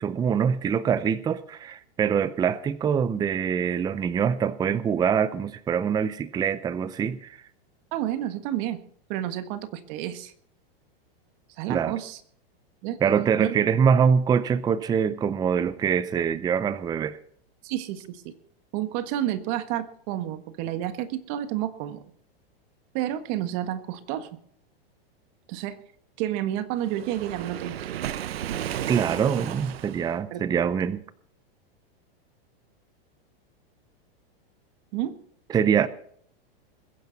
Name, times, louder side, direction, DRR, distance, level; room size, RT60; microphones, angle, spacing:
voice 1, 0.0-7.4 11.7-12.0 13.0-17.2 28.9-31.0 35.5-35.9, right 7 dB, 15° right, 0.5 m, -24 dB
voice 2, 7.9-8.8 9.1-10.3 11.6-12.2 12.8-13.0 13.4-13.5 17.6-18.3 18.7-22.0 22.9-24.3 25.5-25.8 26.2-27.9 30.3-30.5 34.9-35.1, right 12 dB, 50° right, 1.6 m, -30 dB
Waves surf, 26.8-30.2, right 10 dB, 85° right, 1.0 m, -33 dB
21.0 x 10.5 x 4.0 m
supercardioid pair, 135°, 30 cm